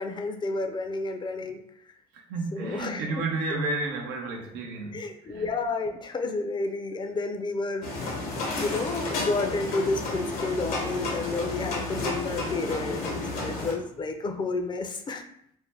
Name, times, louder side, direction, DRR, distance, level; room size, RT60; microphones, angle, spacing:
voice 1, 0.0-1.6 2.5-3.2 4.9-7.9 8.6-15.2, left 3 dB, 30° left, 5 dB, 0.4 m, -31 dB
voice 2, 2.3-5.5, right 3 dB, 90° right, 2 dB, 0.6 m, -31 dB
sound 1, 7.8-13.7, left 2 dB, 80° left, 0.9 m, -31 dB
2.6 x 2.1 x 3.2 m, 0.71 s
supercardioid pair, 80°, 15 cm